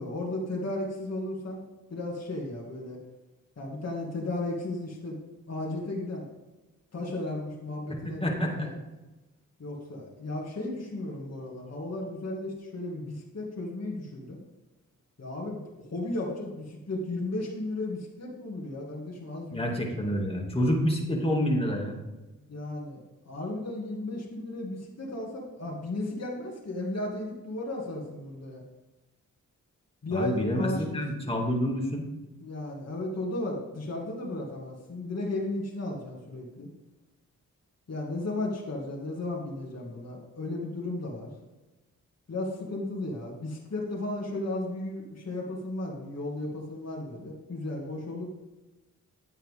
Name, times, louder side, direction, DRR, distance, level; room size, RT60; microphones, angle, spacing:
voice 1, 0.0-1.6 1.9-3.0 3.6-5.2 5.5-6.3 6.9-8.7 9.6-14.4 15.2-19.7 22.5-23.0 23.2-28.6 30.0-31.0 32.4-36.7 37.9-41.3 42.3-48.3, left 2 dB, 50° left, -3 dB, 2.3 m, -34 dB
voice 2, 8.0-8.7 19.5-22.0 30.1-32.1, equal, 15° left, -1 dB, 2.5 m, -28 dB
10.5 x 8.9 x 3.7 m, 1.1 s
cardioid pair, 60°, 33 cm